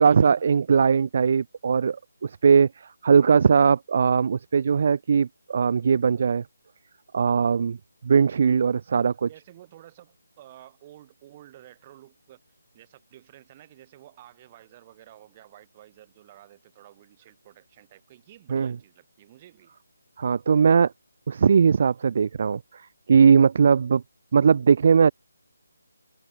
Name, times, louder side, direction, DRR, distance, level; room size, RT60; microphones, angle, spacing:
voice 1, 0.0-2.0 2.2-2.7 3.0-6.4 7.1-7.8 8.0-9.3 18.5-18.7 20.2-20.9 21.3-22.6 23.1-24.0 24.3-25.1, right 6 dB, 45° right, 0.8 m, -19 dB
voice 2, 9.3-12.4 12.7-19.8, right 13 dB, 25° right, 7.8 m, -51 dB
figure-of-eight pair, 155°, 0 cm